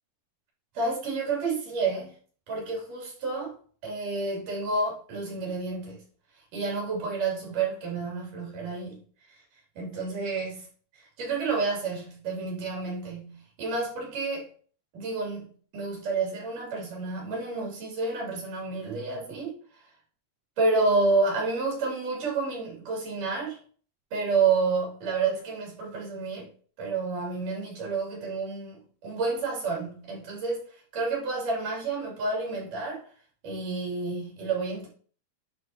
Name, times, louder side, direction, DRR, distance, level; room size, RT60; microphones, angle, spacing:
voice 1, 0.7-2.1 2.5-3.5 3.8-6.0 6.5-9.0 9.3-9.4 9.8-10.7 10.9-14.5 14.9-19.6 20.6-23.6 24.1-26.5 26.8-30.6 30.9-33.1 33.4-34.9, right 3 dB, 75° right, 4.8 m, -29 dB
11.0 x 3.9 x 3.0 m
omnidirectional pair, 3.8 m